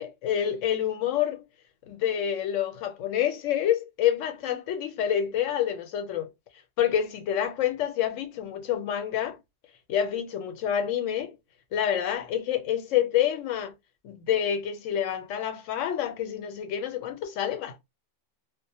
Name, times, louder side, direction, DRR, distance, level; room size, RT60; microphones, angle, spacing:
voice 1, 0.0-1.4 1.9-6.3 6.8-9.4 9.9-11.4 11.7-13.7 14.0-17.8, left 10 dB, 85° left, 1.0 m, -28 dB
2.5 x 2.1 x 2.7 m
omnidirectional pair, 1.3 m